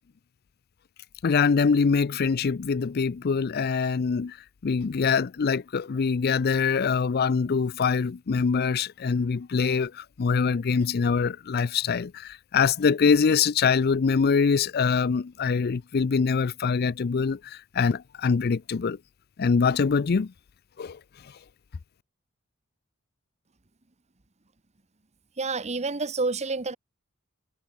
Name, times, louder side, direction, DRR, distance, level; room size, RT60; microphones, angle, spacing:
voice 1, 1.2-4.4 4.6-19.0 19.4-20.3 20.8-21.0, left 5 dB, 50° left, 0.4 m, -24 dB
voice 2, 25.4-26.8, right 3 dB, 35° right, 1.2 m, -28 dB
head